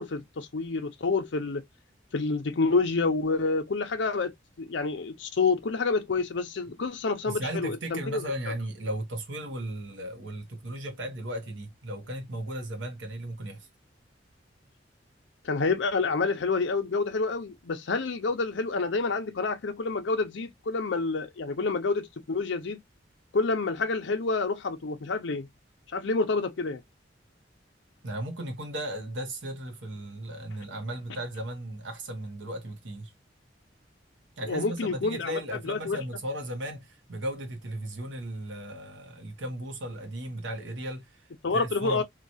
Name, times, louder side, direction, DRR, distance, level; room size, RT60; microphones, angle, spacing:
voice 1, 0.0-1.6 2.1-8.3 15.4-22.8 23.3-25.5 25.9-26.8 34.5-36.0 41.4-42.0, left 3 dB, 75° left, 0.6 m, -28 dB
voice 2, 7.3-13.7 28.0-33.1 34.4-41.3 41.5-42.0, right 1 dB, 80° right, 0.9 m, -36 dB
2.9 x 2.3 x 2.6 m
head